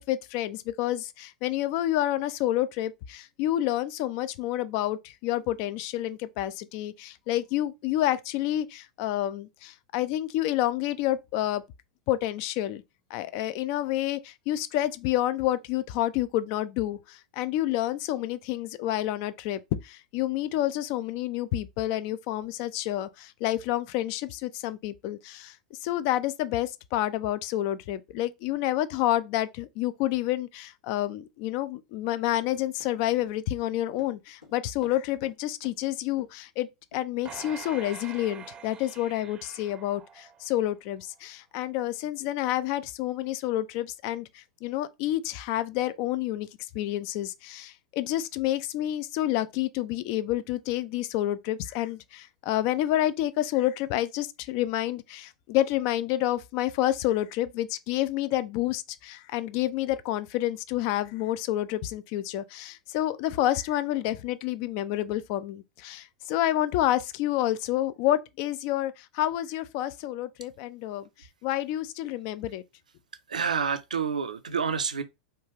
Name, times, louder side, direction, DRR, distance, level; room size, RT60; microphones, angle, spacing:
voice 1, 0.0-11.6 12.1-12.8 13.1-25.6 25.8-72.6, left 14 dB, 45° left, 0.3 m, -29 dB
Run, 32.4-35.4 35.6-35.8 36.2-36.4 36.9-37.0 37.6-37.7, left 3 dB, 85° left, 1.1 m, -51 dB
sound 1, 37.2-40.7 41.2-41.3, right 7 dB, 25° right, 0.5 m, -45 dB
voice 2, 73.3-75.0, right 6 dB, 80° right, 0.4 m, -28 dB
3.3 x 2.3 x 2.9 m
figure-of-eight pair, 90°, 4 cm